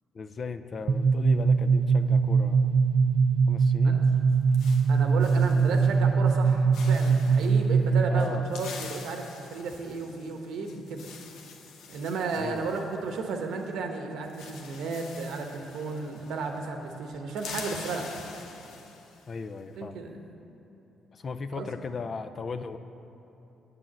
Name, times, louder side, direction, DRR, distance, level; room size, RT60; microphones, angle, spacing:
voice 1, 0.1-2.8 3.5-4.1 8.1-8.5 12.4-12.8 19.3-20.0 21.1-22.8, left 4 dB, 45° left, 10 dB, 0.5 m, -37 dB
sound 1, 0.9-8.4, right 5 dB, 55° right, 0.3 m, -22 dB
sound 2, 4.0-6.0 6.3-6.5 6.7-7.6 8.2-13.7 13.9-14.0 14.2-16.6 16.9-19.3, left 5 dB, 85° left, 0.8 m, -45 dB
voice 2, 4.9-11.1 11.9-18.1 19.8-20.2 21.5-21.8, right 4 dB, 85° right, 3 dB, 1.0 m, -33 dB
8.3 x 6.9 x 7.5 m, 2.9 s
cardioid pair, 90°, 0 cm